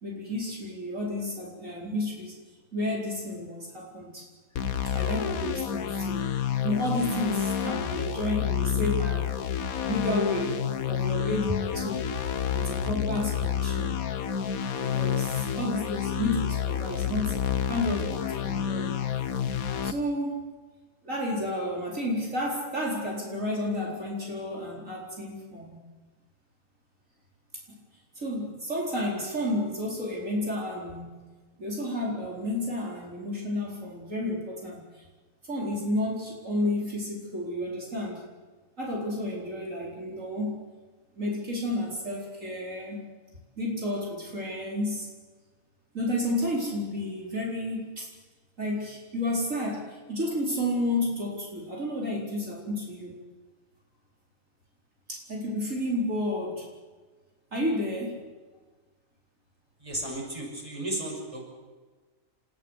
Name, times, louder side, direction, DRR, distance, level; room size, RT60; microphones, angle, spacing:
voice 1, 0.0-2.4 2.7-4.3 4.8-6.2 6.6-9.2 9.9-10.6 10.9-12.1 12.5-14.0 14.8-17.4 17.7-19.0 19.8-20.5 21.0-25.8 28.1-31.2 31.6-35.0 35.5-38.3 38.8-40.6 41.1-43.0 43.6-45.1 45.9-48.1 48.6-53.2 55.1-56.7 57.5-58.2, left 1 dB, 65° right, -2 dB, 4.8 m, -31 dB
sound 1, 4.6-19.9, left 8 dB, 85° left, 1.5 m, -29 dB
voice 2, 59.8-61.5, right 1 dB, 25° right, 0 dB, 6.1 m, -34 dB
29.5 x 15.5 x 8.1 m, 1.4 s
omnidirectional pair, 1.4 m